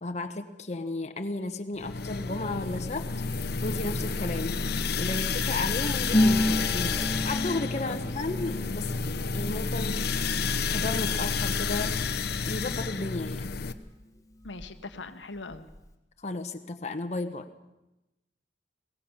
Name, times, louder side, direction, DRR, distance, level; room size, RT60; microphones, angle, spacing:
voice 1, 0.0-3.1 3.6-4.6 5.0-9.0 9.3-10.2 10.7-12.0 12.4-13.5 16.2-17.5, left 2 dB, 40° left, 5 dB, 1.2 m, -34 dB
sound 1, 1.8-13.7, left 5 dB, 60° left, 1.0 m, -30 dB
Wind, 2.0-12.0, equal, 50° right, 2.7 m, -48 dB
Harp, 6.1-13.6 13.8-15.0 15.2-15.9, left 1 dB, 20° left, 1.9 m, -32 dB
voice 2, 14.4-15.7, left 3 dB, 80° left, 8 dB, 1.2 m, -41 dB
21.5 x 17.5 x 7.2 m, 0.94 s
head